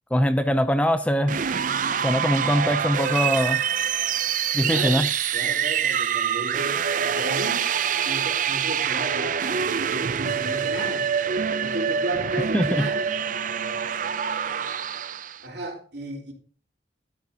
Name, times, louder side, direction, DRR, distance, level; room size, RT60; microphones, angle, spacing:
voice 1, 0.1-1.4 2.0-3.6 4.5-5.1 12.5-12.9, equal, 5° left, 0.5 m, -22 dB
sound 1, 1.2-15.4, right 7 dB, 45° right, 0.5 m, -25 dB
voice 2, 4.6-7.7 8.0-11.1 11.6-13.0 13.9-14.0 15.4-16.3, right 1 dB, 65° right, 3.5 m, -34 dB
13.0 x 9.7 x 2.8 m
head